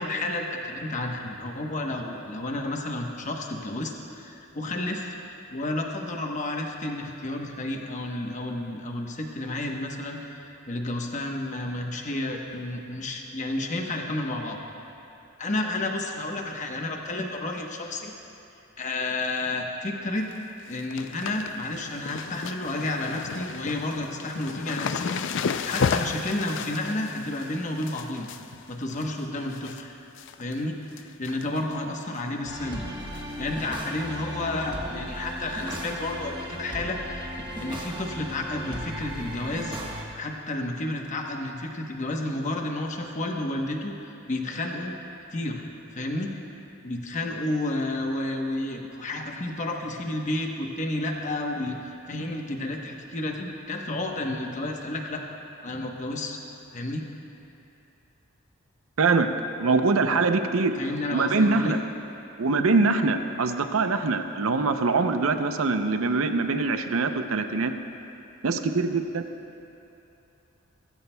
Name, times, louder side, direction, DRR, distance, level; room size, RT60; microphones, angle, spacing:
voice 1, 0.0-5.1 5.5-14.6 15.4-18.1 18.8-20.3 20.7-28.3 28.7-30.0 30.4-30.7 31.2-32.8 33.4-37.3 37.6-39.8 40.1-44.9 45.3-45.6 45.9-46.3 46.8-51.8 52.1-55.2 55.6-56.4 56.7-57.0 60.7-61.8, left 2 dB, 35° left, 2 dB, 1.0 m, -31 dB
sound 1, 20.0-20.3 20.6-29.8 30.2-30.6 30.9-31.7 32.1-32.2 33.1-33.4 33.7-33.8 34.1-34.2 35.8-35.9 36.7-36.8, left 6 dB, 60° left, 0.4 m, -33 dB
sound 2, 32.5-40.0, equal, 25° right, 1.2 m, -36 dB
voice 2, 59.0-59.3 59.6-60.8 61.1-61.8 62.4-67.7 68.4-69.2, right 3 dB, 85° right, 8 dB, 0.6 m, -23 dB
17.5 x 15.0 x 2.3 m, 2.8 s
head